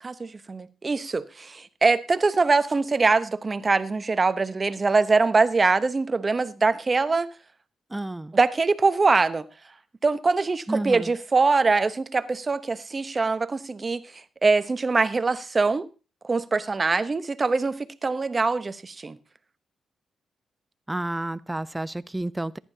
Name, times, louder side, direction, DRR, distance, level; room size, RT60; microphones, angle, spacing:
voice 1, 0.0-7.3 8.3-9.5 10.0-15.9 16.2-19.2, right 3 dB, 30° right, 0.8 m, -23 dB
voice 2, 7.9-8.3 10.7-11.1 20.9-22.6, right 1 dB, 10° right, 0.5 m, -30 dB
14.5 x 11.0 x 2.8 m
cardioid pair, 90°, 0 cm